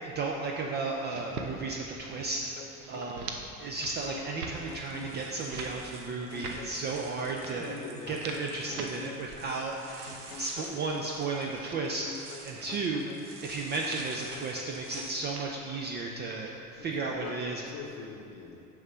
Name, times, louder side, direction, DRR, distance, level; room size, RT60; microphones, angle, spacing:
voice 1, 0.0-2.5 2.9-7.8 8.1-9.7 10.0-12.1 12.4-13.0 13.4-17.6, right 3 dB, 25° right, 0 dB, 0.4 m, -34 dB
sound 1, 0.9-1.5 1.9-2.3 2.6-3.4 3.7-4.0 4.3-4.6 5.0-5.7 6.2-6.6 7.2-7.5 8.0-8.9 9.4-10.2 10.7-11.8 12.5-12.7 13.4-13.5 13.8-14.3 14.9-15.9 16.2-16.6, right 5 dB, 70° right, 0.8 m, -43 dB
sound 2, 2.3-3.1 3.8-5.3 6.1-7.1 7.8-9.3 10.1-11.1 11.8-13.3 14.1-15.1, left 7 dB, 65° left, 0.7 m, -46 dB
sound 3, 3.6-15.1, right 3 dB, 45° right, 1.2 m, -50 dB
voice 2, 7.4-8.2 16.8-18.6, left 4 dB, 30° left, 2 dB, 0.9 m, -44 dB
6.4 x 4.9 x 5.5 m, 2.8 s
figure-of-eight pair, 65°, 47 cm